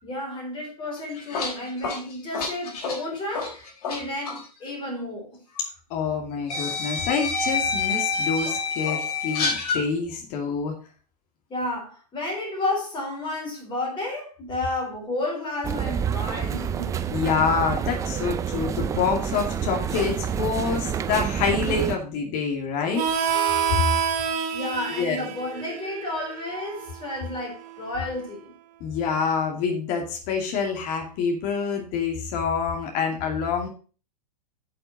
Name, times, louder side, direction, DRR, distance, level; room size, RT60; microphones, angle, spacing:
voice 1, 0.0-5.3 11.5-17.0 24.5-28.5, left 2 dB, 25° left, 3.9 m, -31 dB
sound 1, 1.0-4.0 4.2-4.4 5.6-5.7 6.5-9.8, left 4 dB, 65° left, 3.7 m, -27 dB
voice 2, 5.9-10.7 17.1-23.6 24.9-25.2 28.8-33.7, left 5 dB, 45° left, 2.4 m, -27 dB
sound 2, 15.6-22.0, right 8 dB, 15° right, 0.5 m, -28 dB
Harmonica, 22.9-28.2, right 7 dB, 40° right, 1.3 m, -28 dB
8.4 x 6.0 x 5.2 m
hypercardioid pair, 130°, 20 cm